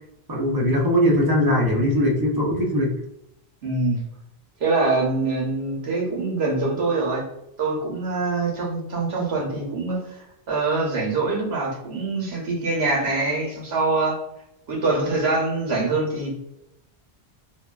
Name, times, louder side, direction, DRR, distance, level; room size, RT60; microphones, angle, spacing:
voice 1, 0.3-3.0, equal, 40° right, -3 dB, 0.3 m, -20 dB
voice 2, 3.6-4.0 4.6-7.2 7.6-10.0 10.5-14.2 14.7-16.3, right 3 dB, 75° right, -2 dB, 1.1 m, -24 dB
2.7 x 2.3 x 2.2 m, 0.80 s
omnidirectional pair, 1.1 m